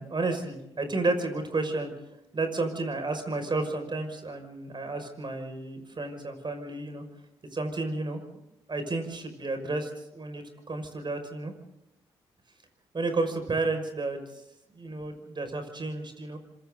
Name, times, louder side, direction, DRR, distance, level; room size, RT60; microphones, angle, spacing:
voice 1, 0.0-1.9 2.3-7.0 7.5-8.2 8.7-11.5 12.9-14.4 14.7-16.4, right 3 dB, 35° right, 7 dB, 5.9 m, -31 dB
27.0 x 26.0 x 3.9 m, 0.83 s
hypercardioid pair, 45°, 13 cm